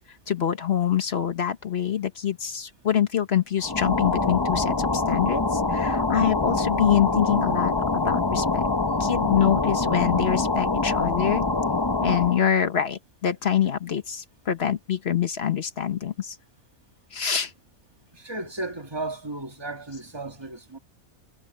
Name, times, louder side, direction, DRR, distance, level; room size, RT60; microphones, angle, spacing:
voice 1, 0.3-8.6 9.0-11.5 12.0-16.4 17.1-17.5, left 9 dB, 50° left, 1.2 m, -25 dB
sound 1, 3.6-12.5, left 3 dB, 25° left, 0.6 m, -25 dB
voice 2, 18.1-20.8, right 2 dB, 20° right, 1.9 m, -35 dB
omnidirectional pair, 1.5 m